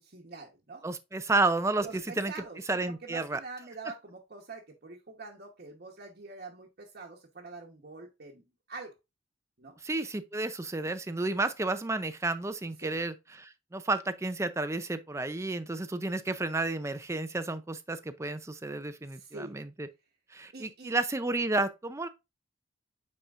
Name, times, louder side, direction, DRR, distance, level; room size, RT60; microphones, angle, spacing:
voice 1, 0.0-0.8 1.8-2.6 2.9-8.9 9.6-9.8 12.8-13.0 19.1-19.6 20.5-20.9, right 3 dB, 50° right, 1.1 m, -45 dB
voice 2, 0.8-2.3 2.7-3.4 9.8-19.9 20.3-22.1, right 2 dB, 15° right, 0.5 m, -31 dB
8.9 x 4.3 x 2.5 m
head